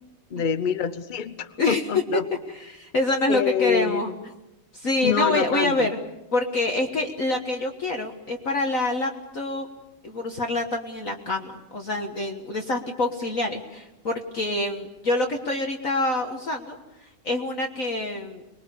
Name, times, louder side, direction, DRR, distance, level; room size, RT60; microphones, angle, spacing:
voice 1, 0.3-2.2 3.3-4.0 5.0-5.9, left 7 dB, 65° left, 13 dB, 0.4 m, -26 dB
voice 2, 1.6-2.0 2.5-4.1 4.7-6.0 6.3-9.7 10.0-18.4, left 2 dB, 45° left, 2 dB, 1.7 m, -26 dB
25.5 x 21.5 x 6.9 m, 0.94 s
omnidirectional pair, 2.3 m